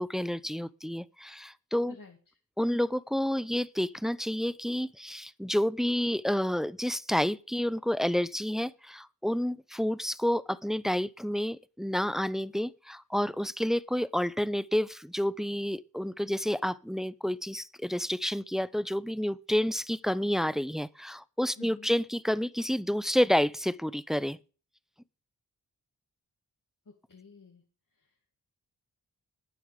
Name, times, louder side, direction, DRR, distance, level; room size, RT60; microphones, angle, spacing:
voice 1, 0.0-2.0 2.6-24.4, equal, ahead, 0.5 m, -29 dB
voice 2, 21.6-21.9 26.9-27.6 27.9-28.1, left 3 dB, 60° left, 2.2 m, -51 dB
10.5 x 9.3 x 5.1 m
cardioid pair, 55°, 37 cm